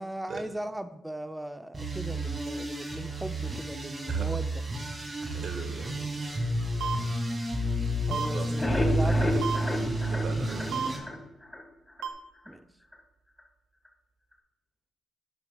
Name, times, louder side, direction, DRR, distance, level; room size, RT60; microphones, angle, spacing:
voice 1, 0.0-4.5 8.1-9.4 12.5-12.6, right 1 dB, 10° right, 10 dB, 0.6 m, -38 dB
sound 1, 1.7-11.0, right 1 dB, 35° right, 2.5 m, -31 dB
voice 2, 5.2-6.4 7.8-7.9 8.3-9.4 10.1-11.0, right 3 dB, 65° right, 6 dB, 1.5 m, -40 dB
sound 2, 6.8-7.0 8.1-8.3 9.4-9.6 10.7-10.9 12.0-12.1, right 7 dB, 80° right, 0.7 m, -30 dB
sound 3, 8.4-11.6 12.0-12.1 12.5-12.6 12.9-13.0, left 2 dB, 15° left, 1.9 m, -31 dB
11.0 x 9.8 x 2.3 m, 0.85 s
supercardioid pair, 50°, 0 cm